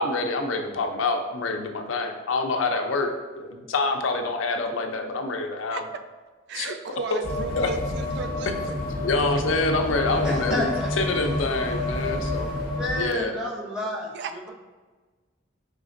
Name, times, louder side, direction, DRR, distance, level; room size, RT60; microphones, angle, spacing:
voice 1, 0.0-3.1 3.4-5.8 6.5-6.7 7.6-7.7 9.0-12.5 12.9-13.3, left 3 dB, 85° left, 5 dB, 0.5 m, -26 dB
voice 2, 5.7-6.0 6.5-8.5 9.3-9.4 13.8-14.4, right 5 dB, 60° right, 8 dB, 0.3 m, -35 dB
sound 1, 7.2-13.0, left 2 dB, 50° left, 0.7 m, -29 dB
voice 3, 10.1-14.1, left 1 dB, 5° right, -8 dB, 1.0 m, -32 dB
5.0 x 3.2 x 2.5 m, 1.3 s
head